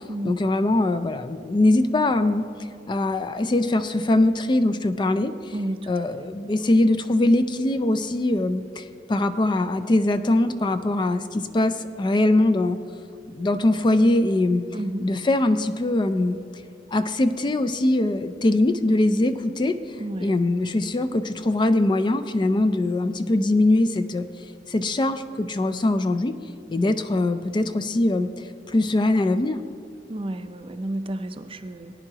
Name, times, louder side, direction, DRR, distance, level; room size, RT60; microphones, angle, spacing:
voice 1, 0.2-2.5 2.9-5.5 5.9-12.8 13.3-14.6 15.0-16.4 16.9-19.8 20.2-24.3 24.7-26.4 26.7-29.6, left 2 dB, 25° left, 10 dB, 0.4 m, -22 dB
voice 2, 5.5-5.9 14.7-15.1 20.0-20.7 30.1-31.9, right 1 dB, 30° right, 9 dB, 0.5 m, -31 dB
18.5 x 9.8 x 2.9 m, 2.3 s
head